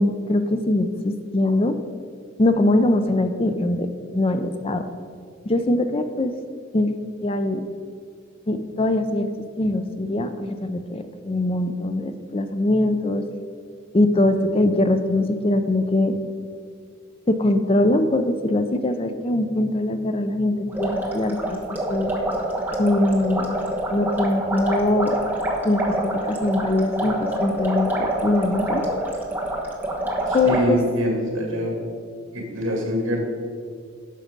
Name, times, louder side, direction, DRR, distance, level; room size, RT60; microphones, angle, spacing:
voice 1, 0.0-1.7 2.4-4.9 5.5-6.3 6.7-6.9 7.2-7.6 8.5-9.3 9.6-13.2 13.9-16.2 17.3-21.6 21.9-22.1 22.8-25.2 25.6-28.8 30.3-30.8, left 1 dB, 25° left, 9 dB, 0.4 m, -22 dB
sound 1, 20.7-30.6, right 1 dB, 10° right, 1.2 m, -26 dB
voice 2, 30.3-31.7 32.3-33.2, equal, 70° right, 0 dB, 2.3 m, -25 dB
11.0 x 6.3 x 5.2 m, 2.1 s
head